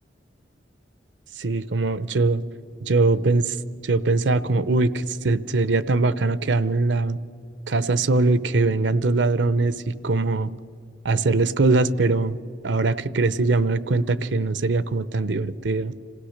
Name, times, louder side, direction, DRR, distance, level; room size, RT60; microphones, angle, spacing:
voice 1, 1.4-2.4 2.8-3.5 3.8-7.2 7.7-10.5 11.0-15.9, right 3 dB, 85° right, 16 dB, 0.7 m, -22 dB
27.0 x 16.5 x 6.6 m, 2.5 s
head